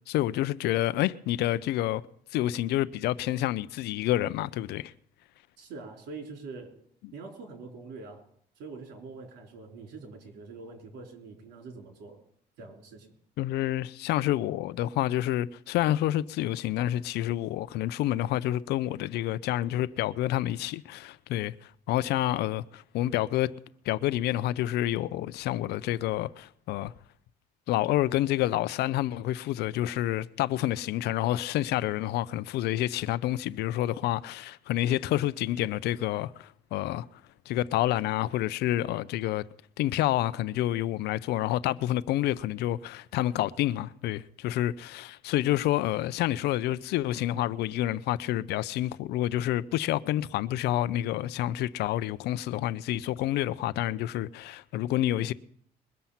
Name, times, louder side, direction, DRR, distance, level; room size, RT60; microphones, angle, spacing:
voice 1, 0.1-2.0 2.3-4.9 13.4-23.5 23.9-26.9 27.7-37.1 37.5-39.4 39.8-55.3, left 14 dB, 80° left, 0.5 m, -28 dB
voice 2, 5.6-6.8 7.1-8.2 8.6-12.2 12.6-13.1, right 4 dB, 80° right, 4.1 m, -44 dB
22.0 x 7.5 x 5.7 m
cardioid pair, 110°, 17 cm